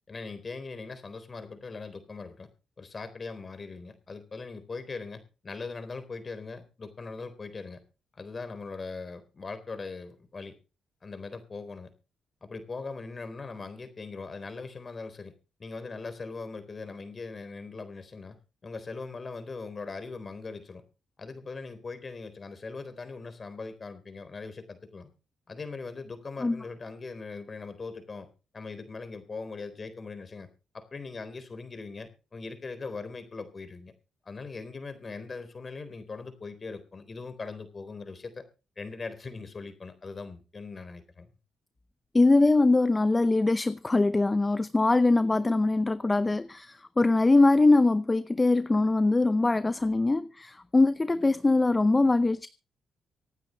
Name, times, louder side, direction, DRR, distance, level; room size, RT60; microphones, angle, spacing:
voice 1, 0.1-2.5 2.8-7.8 8.1-10.5 11.0-11.9 12.4-15.3 15.6-18.4 18.6-20.8 21.2-25.1 25.5-28.3 28.5-30.5 30.7-33.9 34.2-38.4 38.8-41.3, left 4 dB, 40° left, 3.9 m, -40 dB
voice 2, 42.1-52.5, left 2 dB, 20° left, 0.6 m, -22 dB
25.5 x 9.3 x 3.1 m
cardioid pair, 75°, 0 cm